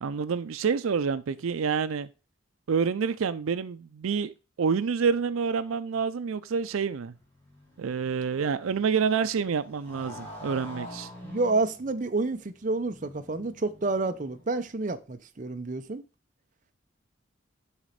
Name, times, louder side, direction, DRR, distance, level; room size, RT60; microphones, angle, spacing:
voice 1, 0.0-2.1 2.7-4.3 4.6-7.1 7.8-11.1, right 6 dB, 85° right, 0.4 m, -28 dB
Motorcycle, 6.7-14.8, left 1 dB, 10° left, 2.5 m, -47 dB
voice 2, 11.2-16.0, right 3 dB, 40° right, 0.6 m, -29 dB
7.2 x 4.1 x 5.0 m
head